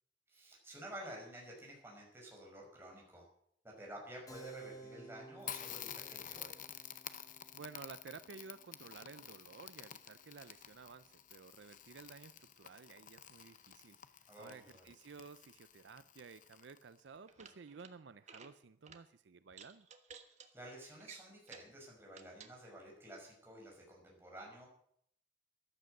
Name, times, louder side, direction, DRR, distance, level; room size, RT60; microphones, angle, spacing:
voice 1, 0.3-3.3 3.6-6.6 14.3-14.9 20.5-24.7, right 1 dB, 15° right, -1 dB, 5.8 m, -51 dB
Keyboard (musical), 4.3-10.4, right 3 dB, 20° left, 2.0 m, -56 dB
Crackle, 5.4-17.0, left 10 dB, 45° left, 0.7 m, -51 dB
voice 2, 7.5-19.9, right 5 dB, 70° right, 13 dB, 0.5 m, -54 dB
sound 1, 17.3-17.9 18.2-18.5 18.8-19.0 19.5-20.5 21.0-21.7 22.1-22.5, right 6 dB, 40° right, 1.3 m, -55 dB
14.0 x 12.0 x 6.6 m, 0.68 s
head